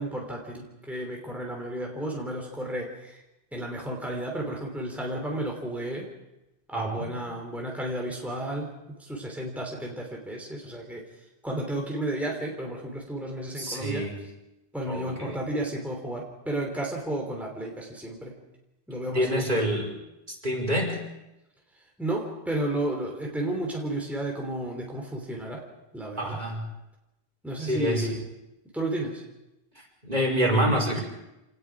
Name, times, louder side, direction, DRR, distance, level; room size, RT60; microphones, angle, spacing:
voice 1, 0.0-3.2 3.5-6.1 6.7-11.0 11.4-14.1 14.7-18.4 18.9-19.7 22.0-25.6 25.9-26.4 27.4-28.2 28.7-29.2 30.5-30.6, right 1 dB, ahead, 0 dB, 3.3 m, -32 dB
voice 2, 6.7-7.1 13.6-14.2 14.9-15.4 19.1-19.9 20.3-21.0 26.2-26.7 27.6-28.1 30.0-31.0, equal, 45° right, -1 dB, 5.4 m, -27 dB
28.0 x 19.5 x 4.9 m, 0.93 s
omnidirectional pair, 1.1 m